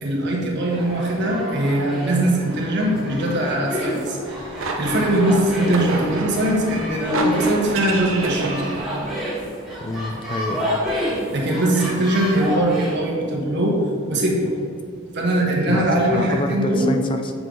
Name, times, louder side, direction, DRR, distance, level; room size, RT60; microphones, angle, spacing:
voice 1, 0.0-8.6 11.3-13.8 14.1-14.6 15.1-17.0, right 1 dB, 55° right, -2 dB, 1.4 m, -21 dB
sound 1, 0.7-13.0, equal, ahead, 1.8 m, -30 dB
sound 2, 4.2-9.3, right 3 dB, 75° right, 0.9 m, -30 dB
voice 2, 9.8-10.7 15.7-17.3, left 2 dB, 25° left, 5 dB, 0.4 m, -27 dB
7.7 x 5.5 x 3.8 m, 2.4 s
head